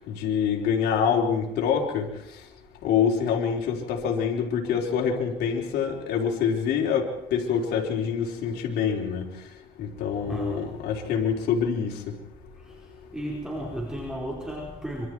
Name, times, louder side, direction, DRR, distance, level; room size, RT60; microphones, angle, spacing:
voice 1, 0.1-2.1 2.8-9.3 9.8-12.1, left 7 dB, 75° left, 0 dB, 4.1 m, -26 dB
voice 2, 10.2-10.7 12.6-15.1, equal, 5° right, -2 dB, 5.0 m, -34 dB
26.0 x 24.5 x 4.7 m, 0.82 s
cardioid pair, 110°, 17 cm